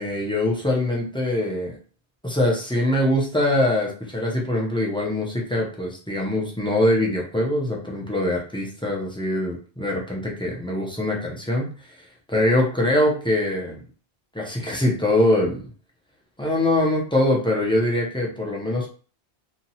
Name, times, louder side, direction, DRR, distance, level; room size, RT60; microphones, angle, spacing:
voice 1, 0.0-1.8 2.2-11.7 12.3-13.8 14.3-15.6 16.4-18.9, left 1 dB, 5° left, -3 dB, 0.5 m, -23 dB
2.9 x 2.2 x 2.8 m, 0.40 s
omnidirectional pair, 1.1 m